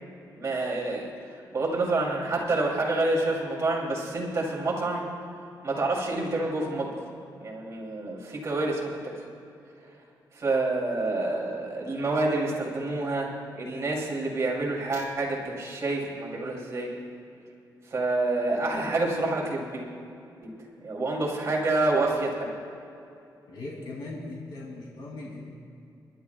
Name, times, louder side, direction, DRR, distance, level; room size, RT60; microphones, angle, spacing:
voice 1, 0.3-5.1 5.6-7.1 7.4-9.2 10.3-16.9 17.9-19.9 20.4-20.5 20.8-22.5, right 2 dB, 40° right, -2 dB, 2.9 m, -28 dB
voice 2, 23.5-25.5, left 2 dB, 90° left, -4 dB, 2.8 m, -39 dB
30.0 x 11.0 x 2.3 m, 2.6 s
wide cardioid pair, 140°, 7 cm